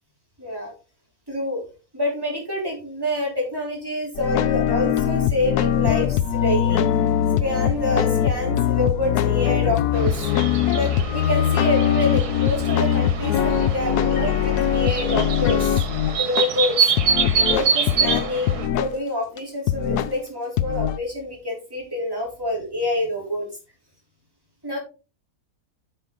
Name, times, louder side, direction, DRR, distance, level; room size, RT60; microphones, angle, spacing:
voice 1, 0.4-0.7 1.3-1.6 1.9-6.9 7.4-10.3 10.7-15.8 16.2-16.9 17.5-23.5 24.6-24.8, left 1 dB, 15° right, -3 dB, 3.7 m, -27 dB
sound 1, 4.1-16.4 17.0-18.9 19.4-19.5 19.7-20.2 20.6-21.0, left 10 dB, 90° left, 1.2 m, -22 dB
sound 2, 9.9-18.7, right 6 dB, 90° right, 1.8 m, -26 dB
8.7 x 6.0 x 3.8 m, 0.33 s
omnidirectional pair, 1.6 m